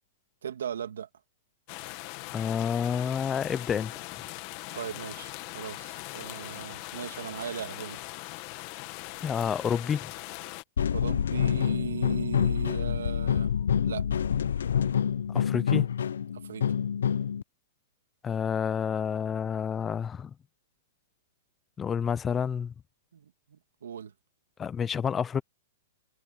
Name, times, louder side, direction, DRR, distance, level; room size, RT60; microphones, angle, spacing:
voice 1, 0.4-1.1 4.7-8.0 10.9-13.5 13.8-14.1 16.3-16.7 23.1-24.1, right 8 dB, 90° right, 2.2 m, -38 dB
sound 1, 1.7-10.6, left 21 dB, 35° left, 1.6 m, -41 dB
voice 2, 2.3-3.9 9.2-10.1 15.3-15.9 18.2-20.3 21.8-22.7 24.6-25.4, left 7 dB, 15° left, 0.4 m, -29 dB
sound 2, 10.8-17.4, left 8 dB, 90° left, 0.6 m, -27 dB
hypercardioid pair, 165°, 0 cm